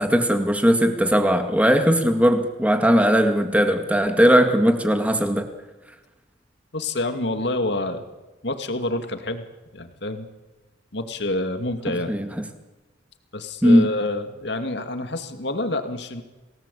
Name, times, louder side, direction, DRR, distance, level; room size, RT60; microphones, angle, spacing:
voice 1, 0.0-5.4 12.1-12.3 13.6-13.9, equal, 5° right, 6 dB, 2.2 m, -18 dB
voice 2, 6.7-8.1 8.4-9.4 9.7-10.3 10.9-12.1 13.3-16.2, left 2 dB, 60° left, 7 dB, 2.4 m, -27 dB
29.0 x 19.0 x 8.6 m, 1.1 s
head